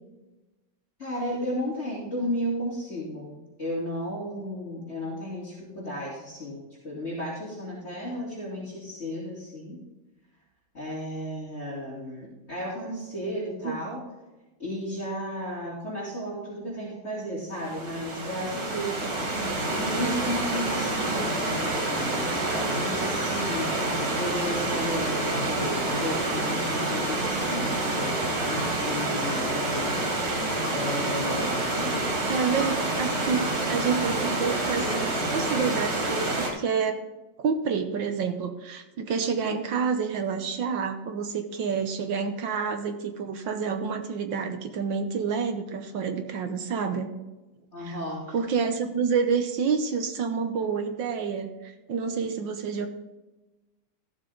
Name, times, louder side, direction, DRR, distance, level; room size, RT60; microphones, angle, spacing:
voice 1, 1.0-9.8 10.7-14.0 14.6-19.0 19.4-28.5 28.7-29.9 30.7-32.1 47.7-48.4, equal, 30° left, -10 dB, 3.9 m, -34 dB
Stream / Liquid, 17.6-36.5, right 2 dB, 85° right, 3.7 m, -28 dB
voice 2, 32.3-32.7 33.0-37.0 37.4-47.1 47.9-48.0 48.3-52.9, right 6 dB, 65° right, 6 dB, 1.6 m, -28 dB
15.0 x 7.2 x 4.0 m, 1.1 s
omnidirectional pair, 2.3 m